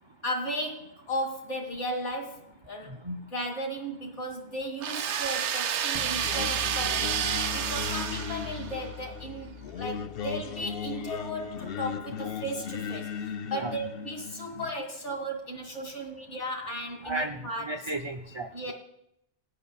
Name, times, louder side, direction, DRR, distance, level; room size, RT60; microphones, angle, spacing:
voice 1, 0.2-2.9 3.3-13.1 13.5-17.7 18.5-18.7, equal, 85° left, 3 dB, 2.4 m, -35 dB
sound 1, 4.8-8.9, right 8 dB, 80° right, 0.9 m, -30 dB
sound 2, 5.9-11.9, left 5 dB, 45° left, 0.4 m, -43 dB
Singing, 6.2-14.7, left 7 dB, 60° left, 0.7 m, -37 dB
voice 2, 17.0-18.7, right 2 dB, 35° right, 4 dB, 0.5 m, -34 dB
18.0 x 8.6 x 2.3 m, 0.75 s
omnidirectional pair, 1.2 m